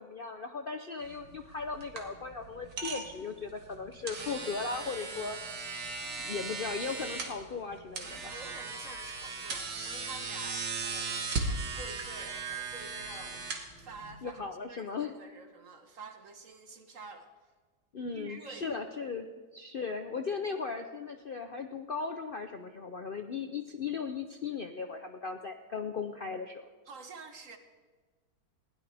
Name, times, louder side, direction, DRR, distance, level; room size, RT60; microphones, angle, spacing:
voice 1, 0.0-5.4 6.2-8.3 14.2-15.2 17.9-26.7, left 5 dB, 90° left, 6 dB, 0.4 m, -37 dB
sound 1, 1.0-14.3, right 4 dB, 70° right, 2.3 m, -38 dB
voice 2, 6.0-6.3 8.3-11.3 11.7-13.4 13.8-14.4 14.7-17.3 18.1-18.7 26.9-27.6, right 4 dB, 45° right, 6 dB, 1.5 m, -48 dB
20.5 x 16.5 x 3.5 m, 1.4 s
omnidirectional pair, 2.0 m